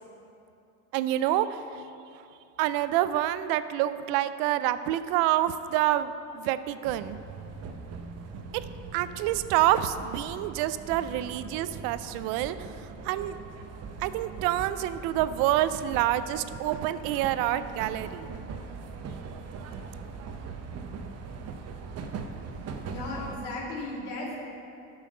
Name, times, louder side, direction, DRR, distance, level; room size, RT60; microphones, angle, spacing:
voice 1, 0.9-1.6 2.6-7.2 8.9-12.6 13.0-13.3 14.0-18.3, right 13 dB, 70° right, 13 dB, 0.5 m, -27 dB
sound 1, 6.8-23.4, right 5 dB, 45° right, 0.8 m, -41 dB
voice 2, 22.9-24.4, left 2 dB, 85° left, -3 dB, 2.3 m, -35 dB
8.7 x 5.7 x 6.5 m, 2.6 s
supercardioid pair, 95°, 36 cm